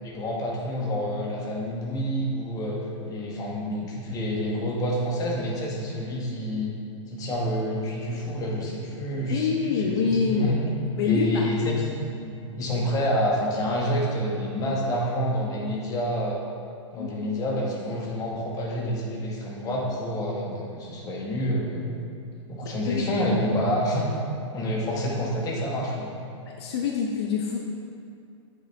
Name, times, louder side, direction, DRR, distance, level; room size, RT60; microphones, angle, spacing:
voice 1, 0.0-2.8 3.1-6.7 7.1-10.6 11.0-16.4 16.9-21.9 22.5-24.1 24.5-26.1, equal, 20° left, -3 dB, 1.7 m, -28 dB
voice 2, 9.3-10.5 11.0-11.5 17.0-17.1 22.6-23.1 26.5-27.6, left 5 dB, 55° left, 0 dB, 0.9 m, -26 dB
9.3 x 7.7 x 3.5 m, 2.5 s
hypercardioid pair, 135°, 16 cm